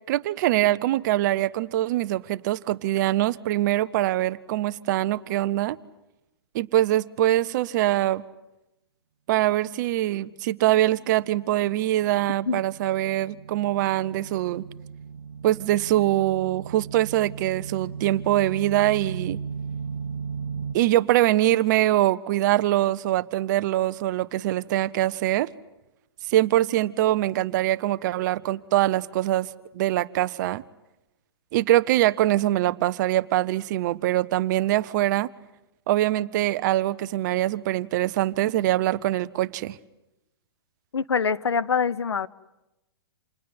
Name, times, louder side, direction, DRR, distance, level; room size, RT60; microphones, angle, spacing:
voice 1, 0.1-5.8 6.5-8.2 9.3-14.6 15.4-19.4 20.7-25.5 26.3-29.5 29.7-30.6 31.5-35.3 35.9-39.8, right 14 dB, 45° right, 1.0 m, -23 dB
sound 1, 11.1-20.8, right 6 dB, 85° right, 1.1 m, -37 dB
voice 2, 40.9-42.3, left 6 dB, 85° left, 0.9 m, -24 dB
28.0 x 20.0 x 9.6 m
hypercardioid pair, 130°, 13 cm